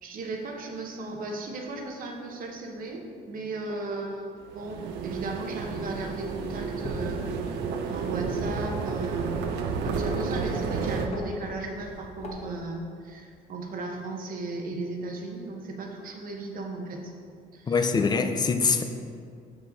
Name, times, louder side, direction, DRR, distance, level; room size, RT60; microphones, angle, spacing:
voice 1, 0.0-4.3 4.5-7.6 7.9-17.1 17.5-17.9, right 2 dB, 55° right, 1 dB, 1.1 m, -36 dB
sound 1, 4.5-11.1, right 5 dB, 80° right, 0.6 m, -31 dB
sound 2, 6.8-7.1 7.4-9.0 9.5-10.6 10.8-11.2 11.7-12.6, left 1 dB, 40° left, 1.4 m, -38 dB
voice 2, 17.7-18.8, left 5 dB, 25° left, 7 dB, 0.5 m, -23 dB
7.0 x 4.9 x 4.0 m, 2.2 s
cardioid pair, 110°, 17 cm